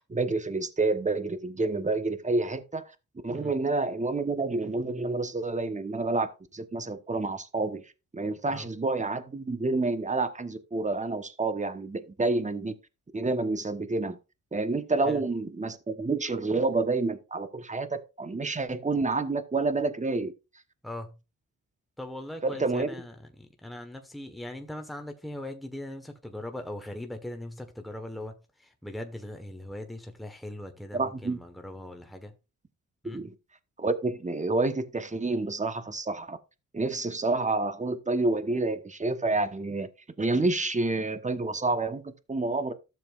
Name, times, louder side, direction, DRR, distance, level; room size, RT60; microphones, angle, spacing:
voice 1, 0.0-2.8 3.2-7.8 8.1-12.8 13.1-14.2 14.5-20.3 22.4-22.9 30.9-31.4 33.1-33.3 33.8-36.4 36.7-39.9 40.2-42.7, right 3 dB, 20° right, 1.1 m, -28 dB
voice 2, 20.8-21.2 22.0-32.4 33.0-33.3, left 1 dB, ahead, 1.3 m, -40 dB
12.5 x 7.0 x 2.5 m
cardioid pair, 70°, 33 cm